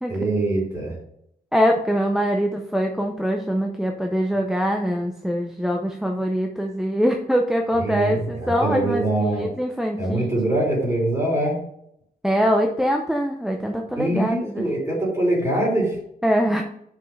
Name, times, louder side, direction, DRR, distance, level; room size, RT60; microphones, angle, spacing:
voice 1, 0.1-1.0 7.7-9.5 10.0-11.6 13.9-16.0, right 1 dB, 20° right, -4 dB, 3.1 m, -23 dB
voice 2, 1.5-10.3 12.2-14.7 16.2-16.6, equal, 5° right, 2 dB, 0.6 m, -23 dB
6.2 x 5.3 x 5.3 m, 0.73 s
wide cardioid pair, 170°, 15 cm